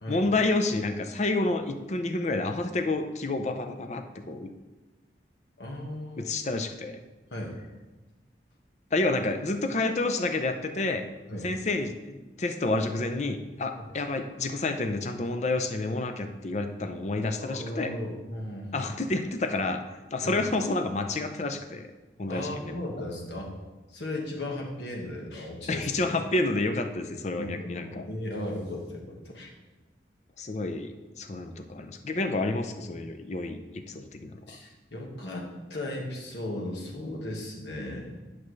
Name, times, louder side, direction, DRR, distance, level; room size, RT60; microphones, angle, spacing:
voice 1, 0.1-4.5 6.2-7.0 8.9-11.0 11.4-17.9 18.7-19.8 20.1-21.9 22.2-23.1 25.7-28.1 30.4-34.6, left 2 dB, 40° left, 7 dB, 0.5 m, -29 dB
voice 2, 5.6-6.4 7.3-7.5 11.3-11.5 17.4-18.9 20.2-20.4 22.3-23.5 23.9-26.2 27.4-29.5 34.5-38.2, left 1 dB, 80° left, -1 dB, 1.6 m, -36 dB
10.5 x 6.0 x 3.2 m, 1.2 s
head